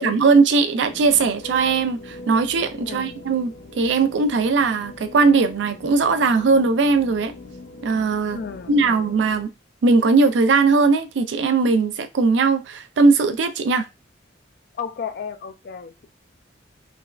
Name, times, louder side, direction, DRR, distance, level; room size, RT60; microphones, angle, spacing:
voice 1, 0.0-3.5 3.8-7.3 7.8-8.4 8.7-9.5 9.8-13.9, right 4 dB, 70° right, 0.4 m, -19 dB
sound 1, 0.8-9.4, left 2 dB, 90° left, 0.7 m, -41 dB
voice 2, 2.8-3.2 8.3-9.0 14.8-16.1, left 6 dB, 55° left, 0.3 m, -33 dB
3.3 x 2.0 x 2.3 m
head